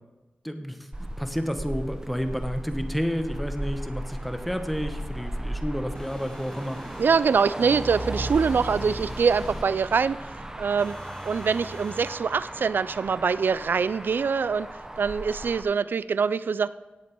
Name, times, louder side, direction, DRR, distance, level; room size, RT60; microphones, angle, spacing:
voice 1, 0.4-6.8, equal, ahead, 7 dB, 1.0 m, -30 dB
Motor vehicle (road), 0.9-15.6, right 1 dB, 20° right, 0.9 m, -36 dB
sound 1, 5.9-7.2 8.3-9.7 10.8-12.2, left 1 dB, 20° left, 1.4 m, -46 dB
voice 2, 7.0-10.2 10.6-14.7 15.0-16.7, right 5 dB, 70° right, 17 dB, 0.4 m, -24 dB
17.5 x 7.3 x 4.5 m, 1.1 s
wide cardioid pair, 95°, 4 cm